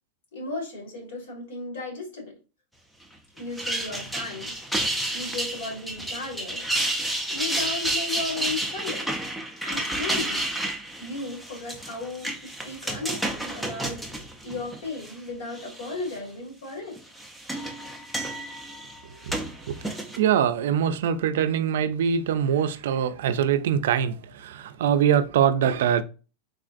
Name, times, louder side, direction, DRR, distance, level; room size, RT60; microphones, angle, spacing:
voice 1, 0.3-2.4 3.4-4.5 5.1-6.6 7.3-9.3 9.6-10.4 11.0-14.1 14.4-17.0, left 3 dB, 75° left, 1.8 m, -35 dB
sound 1, 3.4-15.1 15.6-16.1 17.0-20.2, right 1 dB, ahead, 0.4 m, -31 dB
voice 2, 20.2-26.0, right 8 dB, 75° right, 0.3 m, -23 dB
3.7 x 2.4 x 2.5 m
supercardioid pair, 160°, 0 cm